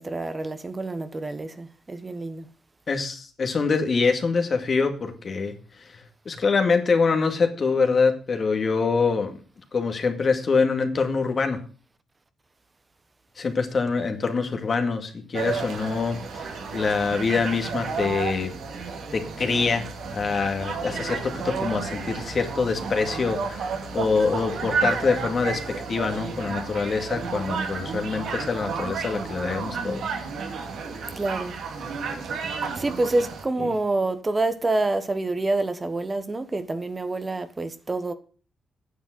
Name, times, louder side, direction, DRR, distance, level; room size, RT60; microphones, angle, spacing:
voice 1, 0.0-2.5 31.2-31.5 32.8-38.1, right 2 dB, 25° right, 1.2 m, -27 dB
voice 2, 2.9-9.3 9.7-11.6 13.4-18.5 19.1-19.9 20.1-30.0, left 4 dB, 45° left, 2.1 m, -25 dB
sound 1, 15.3-33.4, right 5 dB, 75° right, 2.4 m, -32 dB
9.5 x 7.2 x 7.8 m
cardioid pair, 80°, 0 cm